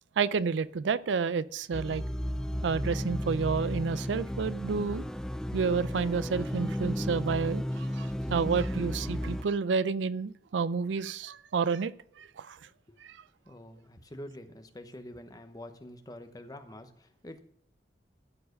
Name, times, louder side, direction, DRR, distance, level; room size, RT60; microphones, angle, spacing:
voice 1, 0.2-2.0 2.6-5.0 5.5-11.9 12.2-12.6 13.0-13.2, right 5 dB, 90° right, 17 dB, 0.4 m, -30 dB
sound 1, 1.7-9.4, equal, 5° left, 0.3 m, -33 dB
voice 2, 13.4-17.4, left 1 dB, 20° left, 7 dB, 0.9 m, -46 dB
14.0 x 4.8 x 6.4 m, 0.68 s
head